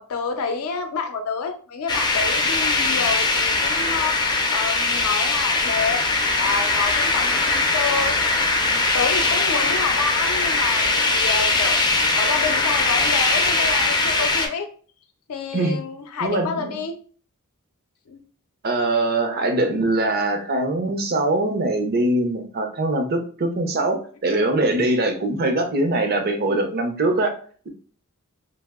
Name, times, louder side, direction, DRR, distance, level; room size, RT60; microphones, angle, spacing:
voice 1, 0.0-6.0 6.4-11.8 12.1-14.7 15.3-17.0 18.1-18.2, left 5 dB, 75° left, 7 dB, 0.5 m, -28 dB
sound 1, 1.9-14.5, left 3 dB, 20° left, 0.4 m, -21 dB
voice 2, 16.2-16.8 18.6-27.3, right 2 dB, 45° right, 5 dB, 0.5 m, -22 dB
2.7 x 2.0 x 3.4 m, 0.44 s
head